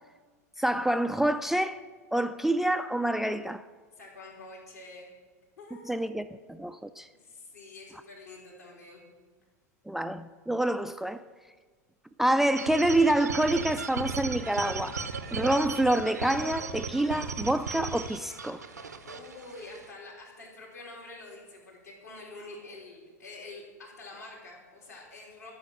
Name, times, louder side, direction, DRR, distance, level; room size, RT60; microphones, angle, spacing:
voice 1, 0.6-1.8 2.1-3.7 5.9-7.1 9.9-11.2 12.2-15.0 15.3-18.6, right 1 dB, 5° right, 0.3 m, -27 dB
voice 2, 4.0-5.1 5.6-6.0 7.1-9.0 19.0-25.5, left 2 dB, 75° left, 3.1 m, -47 dB
sound 1, 12.6-19.9, right 5 dB, 75° right, 0.8 m, -36 dB
12.5 x 6.3 x 6.2 m
figure-of-eight pair, 85°, 9 cm